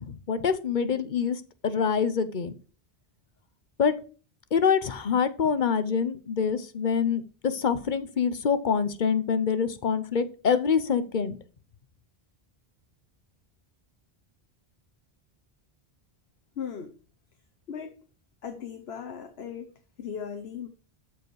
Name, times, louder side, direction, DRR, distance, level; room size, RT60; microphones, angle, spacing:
voice 1, 0.0-2.5 3.8-3.9 4.5-11.4, left 6 dB, 50° left, 0.9 m, -26 dB
voice 2, 16.6-16.9 17.7-18.0 18.4-19.7 20.0-20.7, left 7 dB, 80° left, 1.2 m, -37 dB
13.0 x 4.9 x 4.7 m
omnidirectional pair, 1.0 m